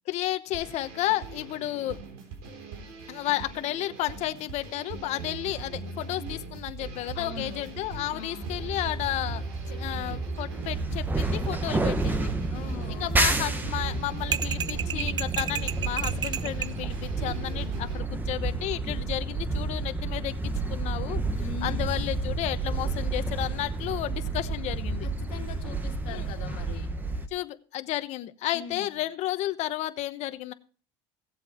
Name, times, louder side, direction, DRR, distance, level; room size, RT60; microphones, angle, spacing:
voice 1, 0.1-2.0 3.1-9.4 9.8-12.3 12.9-21.2 21.6-25.1 26.1-26.3 27.3-30.5, left 15 dB, 55° left, 1.0 m, -32 dB
sound 1, 0.5-18.0, right 5 dB, 80° right, 3.7 m, -40 dB
voice 2, 7.1-7.7 8.1-8.6 9.7-10.2 12.5-13.4 21.4-22.0 25.0-26.9 28.5-29.0, left 8 dB, 75° left, 2.1 m, -42 dB
sound 2, 8.4-27.3, right 2 dB, 15° right, 1.3 m, -30 dB
sound 3, 14.3-16.8, right 9 dB, 30° right, 0.4 m, -31 dB
16.5 x 7.7 x 4.3 m
supercardioid pair, 120°, 14 cm